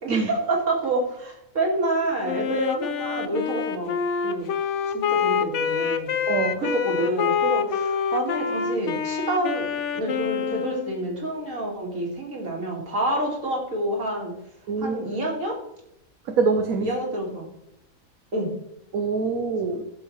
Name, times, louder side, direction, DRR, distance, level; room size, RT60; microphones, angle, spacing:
voice 1, 0.0-4.0 4.2-4.5 4.9-6.1 6.6-14.4 14.8-15.6 16.8-17.5 18.3-18.5, right 1 dB, 65° right, -1 dB, 2.6 m, -28 dB
Wind instrument woodwind instrument, 2.2-11.1, left 7 dB, 65° left, 1.0 m, -26 dB
voice 2, 6.3-6.6 14.7-15.0 16.3-16.9 18.9-19.8, right 4 dB, 90° right, 4 dB, 1.3 m, -24 dB
13.5 x 7.0 x 3.2 m, 0.80 s
omnidirectional pair, 1.4 m